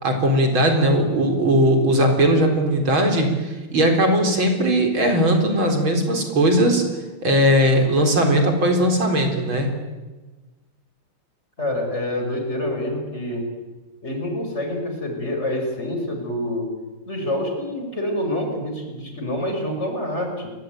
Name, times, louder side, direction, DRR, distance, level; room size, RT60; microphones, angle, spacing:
voice 1, 0.0-6.8 7.2-9.7, right 1 dB, 65° right, 4 dB, 4.9 m, -19 dB
voice 2, 11.6-13.5 14.0-16.7 17.1-20.5, left 1 dB, 30° left, 4 dB, 5.7 m, -27 dB
28.0 x 23.0 x 9.2 m, 1.2 s
omnidirectional pair, 2.4 m